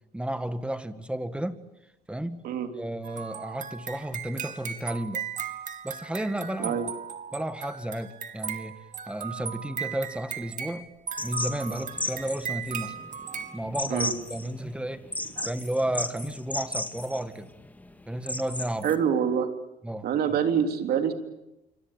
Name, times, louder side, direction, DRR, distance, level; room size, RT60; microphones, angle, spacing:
voice 1, 0.1-1.6 2.1-2.5 2.7-5.3 5.8-6.8 7.3-8.8 9.1-10.9 11.2-13.0 13.5-15.1 15.5-17.5 18.1-18.9 19.8-20.1, right 1 dB, 5° right, 1.9 m, -32 dB
sound 1, 3.0-13.6, right 8 dB, 50° right, 2.7 m, -37 dB
sound 2, 11.2-19.0, left 2 dB, 10° left, 2.0 m, -35 dB
voice 2, 18.8-19.5 20.0-21.1, right 8 dB, 65° right, 3.4 m, -25 dB
27.0 x 25.0 x 8.9 m
cardioid pair, 110°, 17 cm